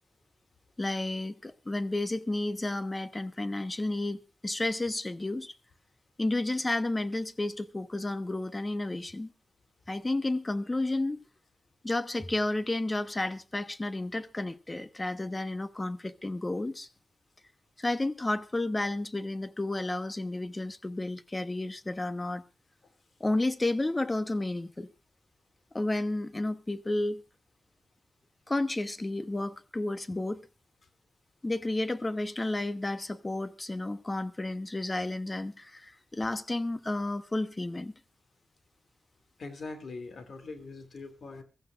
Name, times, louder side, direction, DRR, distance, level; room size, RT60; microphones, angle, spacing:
voice 1, 0.8-5.5 6.2-9.3 9.9-11.2 11.8-16.9 17.8-22.4 23.2-24.9 25.7-27.2 28.5-30.4 31.4-37.9, left 2 dB, 25° left, 1.1 m, -31 dB
voice 2, 39.4-41.4, left 3 dB, 65° left, 2.7 m, -42 dB
23.5 x 14.5 x 2.5 m
cardioid pair, 80°, 0 cm